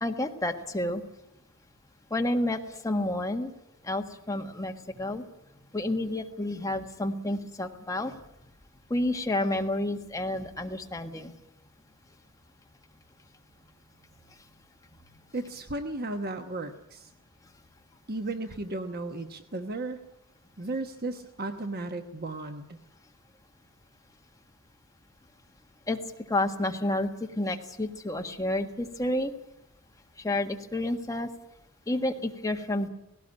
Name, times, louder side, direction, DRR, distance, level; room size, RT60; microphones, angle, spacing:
voice 1, 0.0-1.0 2.1-3.5 3.8-5.2 5.5-8.2 8.9-11.3 25.9-26.0 26.3-29.3 30.2-31.3 31.9-32.9, left 1 dB, 15° left, 4 dB, 1.6 m, -30 dB
voice 2, 15.3-17.1 18.1-20.0 20.6-22.8, right 2 dB, 45° right, 7 dB, 1.1 m, -35 dB
18.0 x 17.5 x 9.8 m, 0.89 s
head